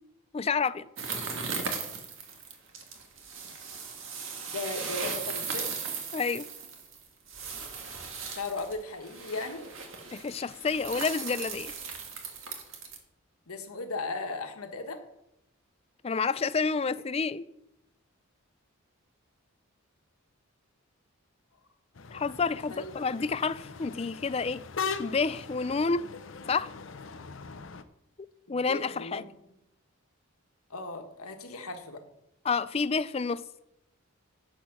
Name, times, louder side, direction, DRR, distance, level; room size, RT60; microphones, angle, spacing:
voice 1, 0.3-0.9 6.1-6.5 10.1-11.7 16.0-17.5 22.1-24.6 25.0-26.1 26.5-26.7 28.2-29.2 32.5-33.4, left 4 dB, 25° left, 0.3 m, -29 dB
sound 1, 1.0-13.0, right 5 dB, 60° right, 1.8 m, -37 dB
voice 2, 4.5-5.7 8.3-9.7 13.5-15.0 22.7-22.9 28.5-29.3 30.7-32.0, left 3 dB, 85° left, 1.5 m, -37 dB
sound 2, 21.9-27.8, left 5 dB, 60° left, 0.7 m, -40 dB
10.0 x 7.5 x 6.1 m
head